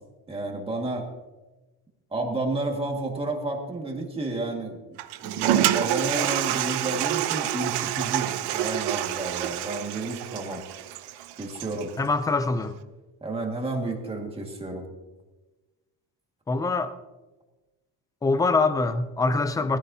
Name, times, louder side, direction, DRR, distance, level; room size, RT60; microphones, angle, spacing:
voice 1, 0.3-1.0 2.1-4.8 5.2-10.6 11.4-11.9 13.2-14.9, right 2 dB, 15° right, 1 dB, 1.9 m, -31 dB
Toilet flush, 5.0-11.9, right 13 dB, 65° right, 0.9 m, -27 dB
voice 2, 12.0-12.8 16.5-16.9 18.2-19.8, left 3 dB, 10° left, 11 dB, 0.4 m, -24 dB
20.0 x 14.5 x 2.8 m, 1.1 s
cardioid pair, 175°, 44 cm